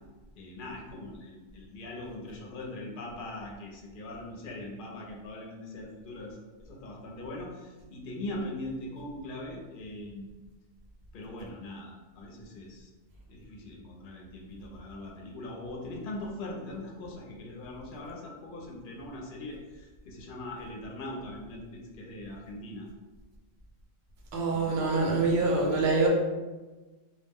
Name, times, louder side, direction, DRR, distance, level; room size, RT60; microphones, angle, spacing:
voice 1, 0.4-10.3 11.1-12.9 13.3-22.9 24.5-25.8, left 1 dB, 60° left, 0 dB, 0.7 m, -41 dB
voice 2, 24.3-26.1, right 3 dB, 80° right, -1 dB, 0.9 m, -25 dB
2.2 x 2.1 x 3.3 m, 1.2 s
omnidirectional pair, 1.1 m